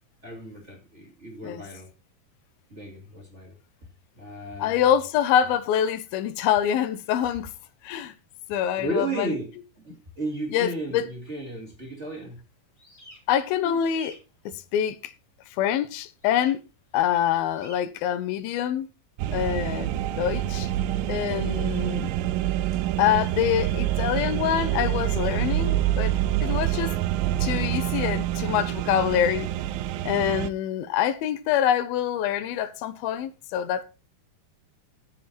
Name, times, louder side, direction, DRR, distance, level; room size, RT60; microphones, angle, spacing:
voice 1, 0.2-1.9 2.7-3.6 4.2-4.9 8.8-9.5 9.8-12.4 13.6-13.8 20.3-20.4 22.7-22.8, right 1 dB, 20° right, 2.5 m, -34 dB
voice 2, 4.6-7.5 7.8-8.1 8.5-9.3 10.5-11.0 13.3-14.2 14.7-15.1 15.6-16.6 16.9-18.9 19.3-19.9 20.2-20.7 21.1-22.1 23.0-26.1 26.4-27.0 27.4-29.5 30.0-33.8, left 10 dB, 85° left, 2.7 m, -25 dB
sound 1, 12.8-13.2 13.7-14.2 16.2-16.5 17.5-17.8, equal, 15° left, 3.4 m, -47 dB
sound 2, 19.2-30.5, right 13 dB, 80° right, 2.4 m, -26 dB
14.5 x 7.0 x 4.3 m
omnidirectional pair, 4.2 m